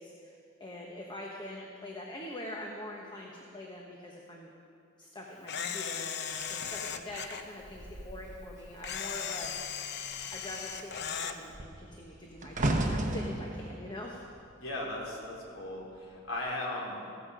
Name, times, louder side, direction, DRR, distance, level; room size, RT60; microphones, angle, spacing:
voice 1, 0.0-4.5 5.0-9.8 10.3-14.2, left 1 dB, 20° left, -1 dB, 1.2 m, -44 dB
Camera, 5.5-7.4 8.8-11.4, left 7 dB, 55° left, 0.7 m, -37 dB
sound 1, 6.3-9.1 9.4-9.7 10.0-15.4 16.1-16.4, right 1 dB, 35° right, 1.1 m, -36 dB
voice 2, 14.6-17.1, left 1 dB, 80° left, -3 dB, 3.8 m, -37 dB
15.5 x 15.0 x 5.0 m, 2.5 s
head